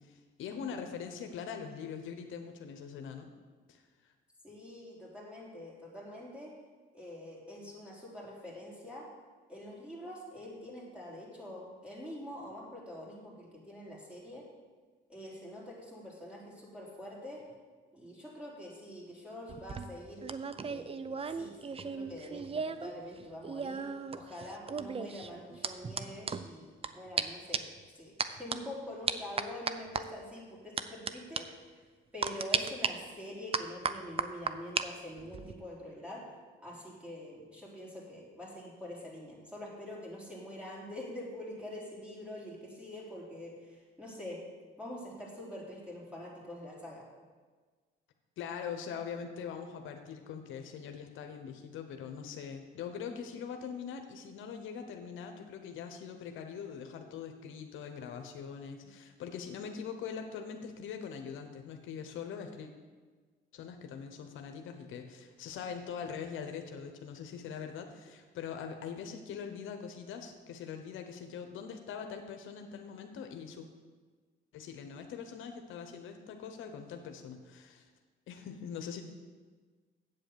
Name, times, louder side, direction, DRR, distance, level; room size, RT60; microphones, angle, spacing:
voice 1, 0.0-3.3 3.7-3.8 48.4-62.7 63.5-73.7 74.5-77.9 78.3-79.0, left 7 dB, 85° left, 5 dB, 1.0 m, -42 dB
voice 2, 4.4-6.5 6.9-9.1 9.5-14.5 15.1-17.4 17.9-20.2 20.6-23.9 24.2-28.1 28.4-31.8 32.1-36.2 36.6-44.4 44.8-47.1, left 1 dB, 5° right, -5 dB, 3.7 m, -45 dB
sound 1, 19.5-22.9 23.2-26.9 27.2-27.3 27.5-27.8 28.2-28.6 29.1-30.0 30.8-31.1 31.4-31.5 32.2-32.9 33.5-34.9 35.2-35.5, right 5 dB, 30° right, 0.6 m, -35 dB
8.4 x 7.9 x 6.9 m, 1.4 s
cardioid pair, 90°, 20 cm